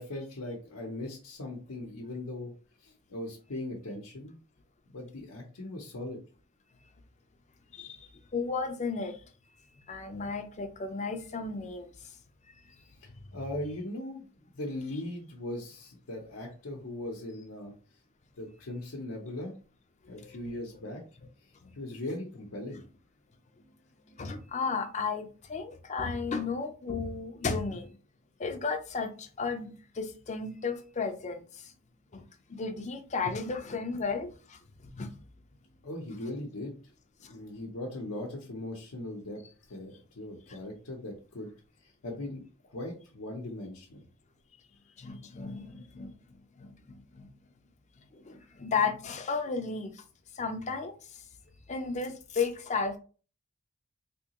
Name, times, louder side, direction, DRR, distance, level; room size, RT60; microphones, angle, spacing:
voice 1, 0.0-2.5 2.8-4.4 4.9-6.2 13.0-14.3 14.5-17.7 18.4-19.6 20.0-21.0 21.7-22.8 35.8-36.7 37.2-39.4 39.7-41.5 41.8-42.4 42.7-44.0, left 1 dB, 90° left, 0.8 m, -39 dB
voice 2, 7.7-9.2 9.9-11.9 20.1-20.5 21.6-21.7 24.1-28.0 28.4-31.7 32.1-34.6 34.9-35.1 37.2-37.3 40.5-40.6 45.0-46.1 46.6-46.7 47.1-47.3 48.1-50.0 50.3-50.9 51.7-53.0, left 4 dB, 35° left, 0.5 m, -34 dB
3.4 x 2.8 x 2.9 m
head